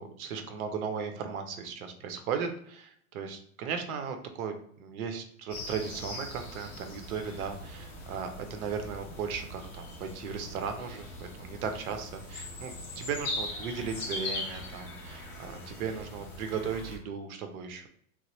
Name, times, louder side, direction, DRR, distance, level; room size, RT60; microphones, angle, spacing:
voice 1, 0.0-17.9, right 6 dB, 70° right, 6 dB, 0.7 m, -36 dB
sound 1, 5.5-17.0, left 2 dB, 20° left, 0.4 m, -41 dB
3.0 x 2.1 x 3.1 m, 0.63 s
supercardioid pair, 145°, 45 cm